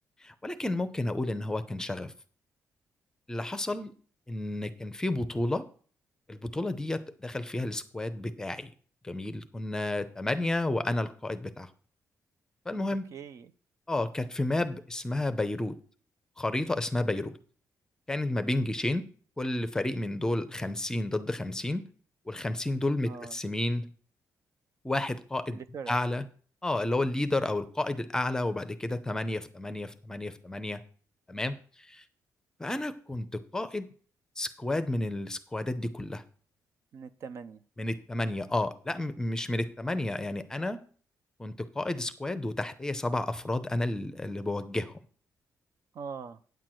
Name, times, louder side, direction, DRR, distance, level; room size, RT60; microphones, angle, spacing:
voice 1, 0.2-2.1 3.3-3.9 4.3-5.6 6.3-8.7 9.0-11.7 12.7-13.1 13.9-15.8 16.4-17.4 18.1-19.1 19.4-21.8 22.3-23.9 24.8-25.6 25.9-26.3 26.6-30.8 31.3-31.5 31.9-32.0 32.6-33.9 34.4-36.2 37.8-40.8 41.4-45.0, left 2 dB, 10° left, 10 dB, 0.6 m, -31 dB
voice 2, 13.1-13.5 23.1-23.4 25.5-25.9 36.9-37.6 45.9-46.4, right 6 dB, 50° right, 12 dB, 0.5 m, -42 dB
9.2 x 4.5 x 7.6 m, 0.43 s
cardioid pair, 155°, 6 cm